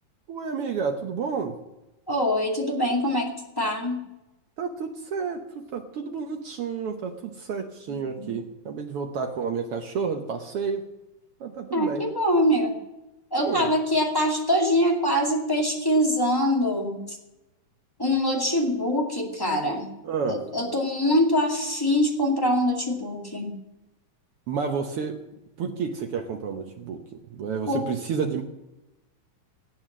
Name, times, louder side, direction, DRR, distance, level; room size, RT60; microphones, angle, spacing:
voice 1, 0.3-1.6 4.6-10.8 11.4-12.0 13.4-13.7 20.0-20.4 24.5-25.2 25.6-28.4, right 6 dB, 75° right, 4 dB, 1.3 m, -30 dB
voice 2, 2.1-3.3 3.6-4.0 7.9-8.4 11.7-12.7 13.3-17.2 18.0-19.8 20.3-23.5 27.7-27.9, equal, 10° left, -1 dB, 1.6 m, -24 dB
16.5 x 9.1 x 7.4 m, 0.98 s
omnidirectional pair, 3.9 m